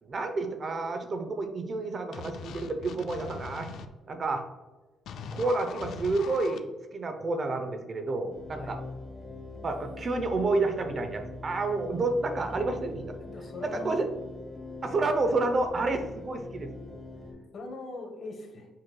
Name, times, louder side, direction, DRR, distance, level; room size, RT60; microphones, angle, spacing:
voice 1, 0.0-3.7 4.1-4.4 5.3-8.8 9.6-13.2 13.6-14.1 14.8-16.7, right 3 dB, 45° right, 6 dB, 0.6 m, -29 dB
sound 1, 2.1-3.9 5.1-6.6, left 6 dB, 75° left, 0.3 m, -41 dB
sound 2, 8.3-17.3, left 3 dB, 10° right, 1.5 m, -43 dB
voice 2, 13.2-14.1 17.5-18.7, left 2 dB, 55° left, 4 dB, 0.9 m, -41 dB
7.4 x 3.0 x 2.2 m, 1.2 s
cardioid pair, 90°, 0 cm